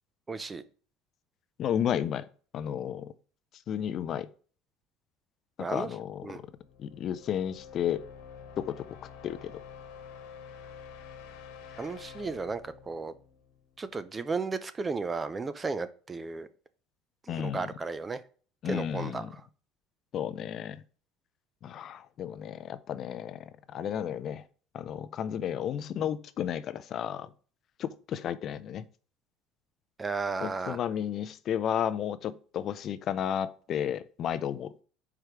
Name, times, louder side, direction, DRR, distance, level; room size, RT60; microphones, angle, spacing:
voice 1, 0.3-0.6 5.6-5.9 6.2-6.4 11.8-13.1 13.8-16.5 17.3-18.2 18.7-19.2 30.0-30.8, right 4 dB, 15° right, 0.5 m, -34 dB
voice 2, 1.6-2.3 2.5-3.1 3.7-4.3 5.7-6.4 6.8-8.0 8.6-9.0 9.2-9.6 17.3-17.7 18.6-19.3 20.1-20.8 21.6-24.4 24.7-27.3 27.8-28.9 30.4-34.7, left 9 dB, 40° left, 0.4 m, -33 dB
sound 1, 6.4-14.2, left 7 dB, 90° left, 1.2 m, -48 dB
5.0 x 4.6 x 5.8 m
cardioid pair, 150°, 0 cm